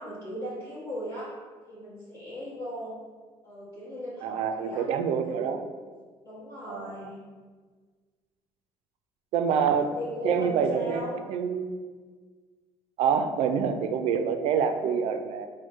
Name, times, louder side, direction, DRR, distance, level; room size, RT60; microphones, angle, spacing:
voice 1, 0.0-1.3 1.7-3.0 3.4-4.8 5.2-5.7 6.2-7.2 9.6-11.2 14.6-14.9, equal, 25° left, -11 dB, 1.4 m, -38 dB
voice 2, 4.2-5.6 6.7-7.1 9.3-9.9 10.2-11.7 13.0-15.5, right 7 dB, 70° right, 7 dB, 0.4 m, -26 dB
4.3 x 2.2 x 4.5 m, 1.5 s
cardioid pair, 110°, 11 cm